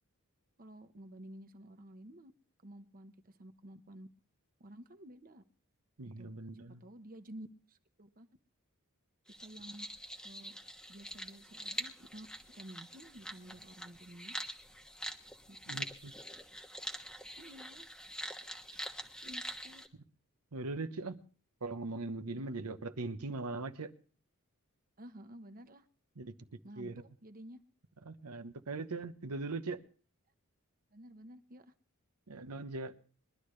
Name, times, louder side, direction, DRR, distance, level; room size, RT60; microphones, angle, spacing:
voice 1, 0.6-2.3 2.6-4.1 4.6-5.4 6.2-8.3 9.4-9.9 10.2-10.6 10.9-12.3 12.5-14.4 15.5-15.8 17.4-17.9 19.2-19.8 25.0-25.9 26.6-27.6 30.9-31.7, right 1 dB, 40° right, 1.0 m, -52 dB
voice 2, 6.0-6.8 15.7-16.1 20.5-21.2 21.6-23.9 26.2-26.3 26.8-26.9 28.0-29.8 32.3-32.9, right 3 dB, 85° right, 1.0 m, -40 dB
sound 1, 9.3-19.9, equal, 5° left, 1.2 m, -45 dB
22.5 x 12.0 x 3.2 m
head